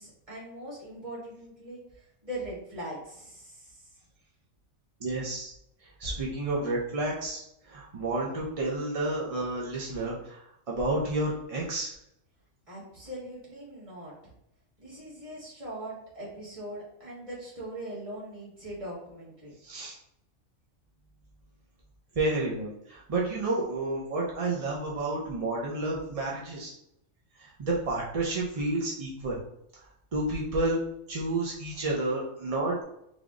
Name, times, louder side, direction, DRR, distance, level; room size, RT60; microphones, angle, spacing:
voice 1, 0.0-3.9 12.7-14.3 14.8-19.5, right 1 dB, 25° right, -7 dB, 1.6 m, -41 dB
voice 2, 5.0-5.5 6.0-11.9 19.6-20.0 22.2-26.7 27.4-29.4 30.1-30.8 31.1-32.8, right 2 dB, 50° right, -4 dB, 0.4 m, -30 dB
3.4 x 2.3 x 3.6 m, 0.78 s
omnidirectional pair, 1.4 m